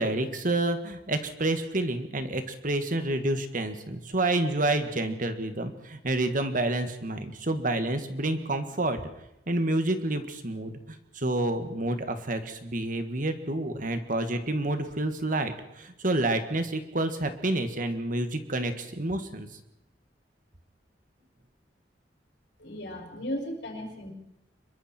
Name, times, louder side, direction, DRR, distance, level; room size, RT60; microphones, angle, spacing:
voice 1, 0.0-9.0 9.5-19.5, right 2 dB, 50° right, 8 dB, 1.9 m, -29 dB
voice 2, 22.6-24.1, equal, 85° left, 1 dB, 6.1 m, -35 dB
26.5 x 22.5 x 4.5 m, 0.86 s
head